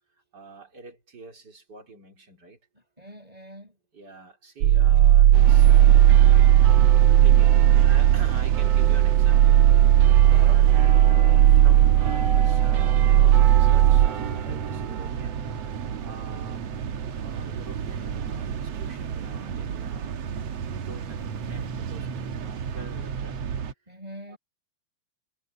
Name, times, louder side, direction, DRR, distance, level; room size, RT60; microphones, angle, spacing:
voice 1, 0.3-2.6 3.9-10.0 10.2-15.4 16.0-16.8 17.2-20.2 20.7-23.4 24.3-24.4, right 3 dB, 35° right, 5.0 m, -46 dB
voice 2, 2.7-3.8 10.1-10.7 12.0-12.1 23.9-24.4, equal, 10° right, 6.1 m, -44 dB
sound 1, 4.6-14.1, right 12 dB, 80° right, 1.3 m, -16 dB
sound 2, 5.3-23.7, right 7 dB, 65° right, 2.3 m, -32 dB
omnidirectional pair, 3.3 m